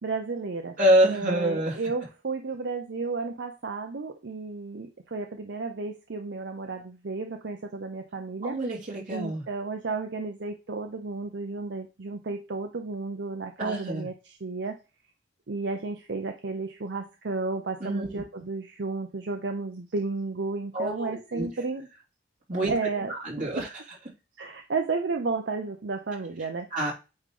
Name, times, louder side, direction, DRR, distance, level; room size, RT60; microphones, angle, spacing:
voice 1, 0.0-0.8 1.1-8.6 9.1-14.8 15.5-21.9 22.7-23.6 24.4-26.7, right 3 dB, 75° right, 5 dB, 0.7 m, -32 dB
voice 2, 0.8-1.7 8.4-9.4 13.6-14.1 17.8-18.2 20.7-21.5 22.5-22.7 23.2-23.7 26.7-26.9, right 1 dB, 50° right, -3 dB, 2.8 m, -26 dB
8.8 x 3.1 x 3.8 m, 0.30 s
head